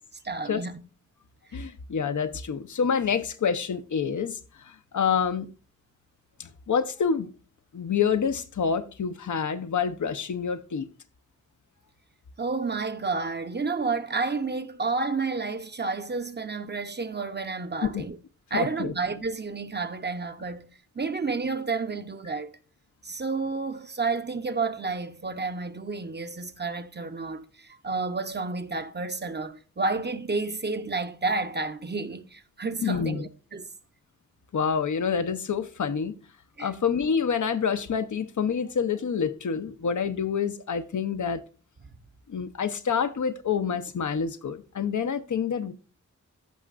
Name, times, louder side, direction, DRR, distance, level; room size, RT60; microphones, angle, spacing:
voice 1, 0.2-0.8 12.4-18.2 18.5-22.5 23.0-33.7 36.6-36.7, right 4 dB, 35° right, 0.8 m, -30 dB
voice 2, 1.5-4.4 4.6-5.5 6.4-7.3 7.7-10.9 17.8-18.0 18.5-18.9 32.8-33.3 34.5-36.1 36.6-41.4 42.3-45.7, left 6 dB, 75° left, 0.8 m, -27 dB
14.5 x 5.6 x 2.5 m
wide cardioid pair, 115°, 30 cm